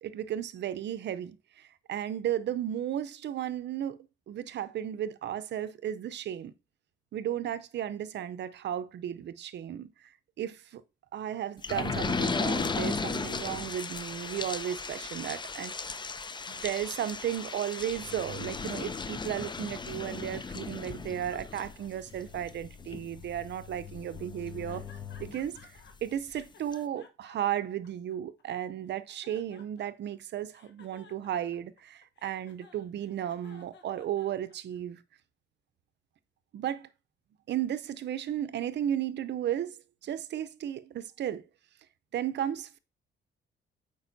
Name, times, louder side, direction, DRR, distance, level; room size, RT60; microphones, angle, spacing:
voice 1, 0.0-4.0 4.3-6.5 7.1-10.1 10.4-10.8 11.1-15.7 16.5-24.8 25.2-25.7 26.0-35.0 36.5-36.9 37.5-41.4 42.1-42.8, right 10 dB, 60° right, 0.6 m, -34 dB
sound 1, 11.6-25.9 26.4-26.5 26.7-26.8, left 4 dB, 20° left, 0.6 m, -36 dB
sound 2, 24.7-25.9 26.3-28.4 28.9-30.1 30.5-34.8, left 5 dB, 65° left, 1.2 m, -56 dB
8.1 x 5.3 x 2.7 m
cardioid pair, 90°, 20 cm